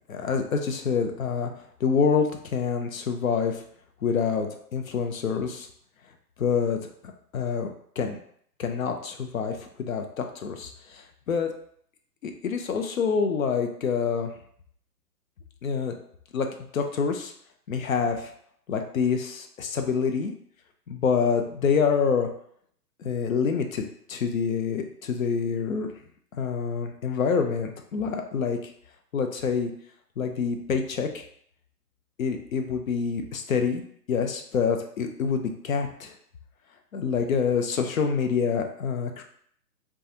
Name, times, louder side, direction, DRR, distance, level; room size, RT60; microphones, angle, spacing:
voice 1, 0.1-1.5 1.8-3.6 4.0-5.7 6.4-6.8 7.3-7.7 8.0-8.2 8.6-11.0 11.3-11.5 12.2-14.3 15.6-15.9 16.3-16.5 16.7-17.3 17.7-18.3 18.7-20.3 20.9-22.3 23.0-23.8 24.1-25.9 26.3-28.6 29.1-29.7 30.2-31.2 32.2-33.8 34.1-36.1 36.9-39.2, left 6 dB, 60° left, 5 dB, 0.5 m, -26 dB
2.5 x 2.3 x 2.7 m, 0.63 s
figure-of-eight pair, 130°, 49 cm